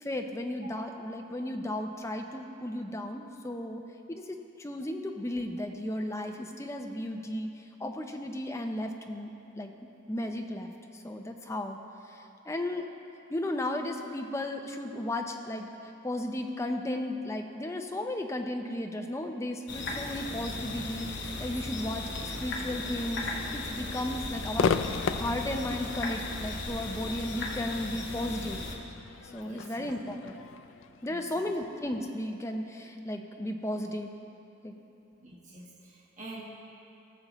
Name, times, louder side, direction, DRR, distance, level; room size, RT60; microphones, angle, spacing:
voice 1, 0.0-3.8 4.1-7.5 7.8-9.7 10.1-10.7 11.0-11.8 12.5-12.8 13.3-15.7 16.0-24.7 25.1-28.6 29.3-30.3 31.0-34.1 34.6-34.7, left 1 dB, 15° left, 4 dB, 0.5 m, -34 dB
sound 1, 19.7-28.8, left 2 dB, 55° left, 1.0 m, -36 dB
Crowd / Fireworks, 24.6-31.9, left 5 dB, 70° left, 0.3 m, -35 dB
voice 2, 29.4-29.9 31.1-31.5 35.2-36.4, right 2 dB, 40° right, -4 dB, 1.2 m, -47 dB
17.5 x 6.8 x 3.0 m, 2.9 s
head